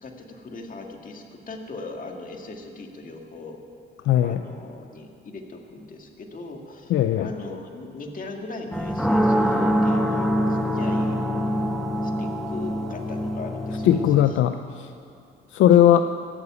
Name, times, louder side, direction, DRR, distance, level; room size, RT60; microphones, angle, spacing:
voice 1, 0.0-3.6 4.2-11.2 12.0-14.0 15.9-16.0, left 3 dB, 45° left, 2 dB, 1.9 m, -39 dB
voice 2, 4.1-4.4 6.9-7.3 13.8-14.9 15.5-16.0, left 11 dB, 80° left, 9 dB, 0.5 m, -18 dB
sound 1, 8.7-14.2, equal, ahead, 1.0 m, -24 dB
15.0 x 7.2 x 9.4 m, 2.5 s
cardioid pair, 90°, 20 cm